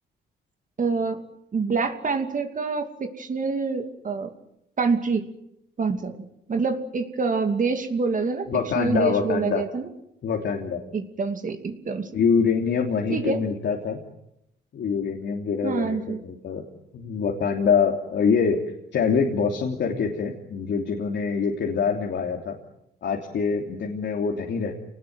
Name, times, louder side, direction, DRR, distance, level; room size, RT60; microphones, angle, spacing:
voice 1, 0.8-1.2 1.5-4.3 4.8-5.3 5.8-8.5 8.8-9.9 10.9-12.1 13.1-13.4 15.6-16.2, right 4 dB, 40° right, 6 dB, 2.7 m, -26 dB
voice 2, 8.5-9.6 10.2-10.8 12.1-14.0 14.7-16.6 16.9-18.6 18.9-22.6 23.0-24.7, left 6 dB, 65° left, 2 dB, 3.2 m, -25 dB
27.0 x 19.5 x 9.5 m, 0.84 s
cardioid pair, 90°, 20 cm